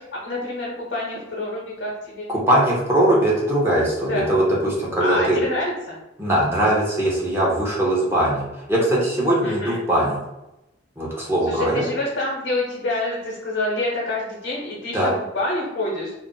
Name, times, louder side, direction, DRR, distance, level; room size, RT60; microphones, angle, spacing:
voice 1, 0.0-2.3 4.1-4.3 5.0-6.0 9.4-9.8 11.4-16.1, left 2 dB, 90° left, -4 dB, 0.8 m, -27 dB
voice 2, 2.3-5.4 6.2-10.2 11.0-11.8 14.9-15.1, right 1 dB, 15° right, -5 dB, 0.7 m, -20 dB
2.4 x 2.0 x 3.8 m, 0.94 s
head